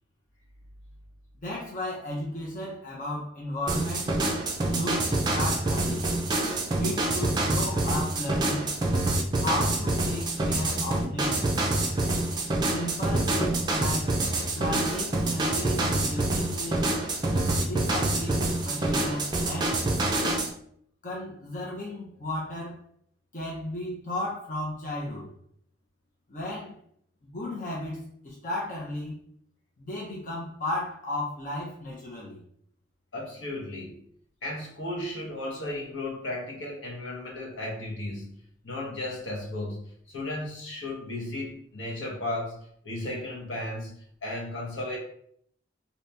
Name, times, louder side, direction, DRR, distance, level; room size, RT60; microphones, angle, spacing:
voice 1, 1.4-4.1 4.7-6.1 6.8-8.7 9.4-11.5 12.7-14.2 14.5-16.8 17.7-19.8 21.0-22.8 23.3-25.3 26.3-26.8 27.2-29.1 29.8-32.4, left 1 dB, 40° left, -3 dB, 0.6 m, -34 dB
sound 1, 3.7-20.5, right 2 dB, 20° right, 0.4 m, -26 dB
voice 2, 33.1-34.0 34.4-38.3 38.6-43.9 44.2-45.0, left 1 dB, 75° left, -2 dB, 1.0 m, -35 dB
2.8 x 2.7 x 3.3 m, 0.65 s
head